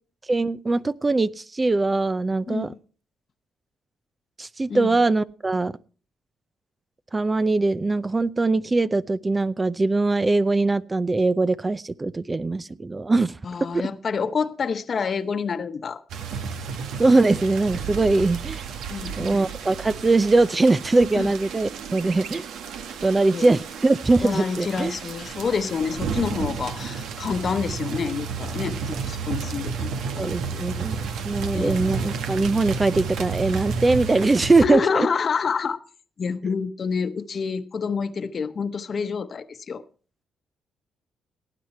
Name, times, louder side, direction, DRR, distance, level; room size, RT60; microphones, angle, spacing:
voice 1, 0.3-2.7 4.4-5.7 7.1-13.4 13.7-13.8 17.0-18.6 19.2-22.4 23.0-24.9 30.2-31.0 31.2-35.1, right 3 dB, 20° right, 0.5 m, -21 dB
voice 2, 2.5-2.8 4.7-5.0 13.4-16.0 18.9-19.5 21.1-21.3 23.3-23.5 24.2-30.3 31.5-31.8 34.6-35.8 36.2-39.8, left 5 dB, 45° left, 1.0 m, -28 dB
sound 1, 16.1-34.6, right 6 dB, 80° right, 1.4 m, -32 dB
18.0 x 9.5 x 4.4 m
cardioid pair, 90°, 0 cm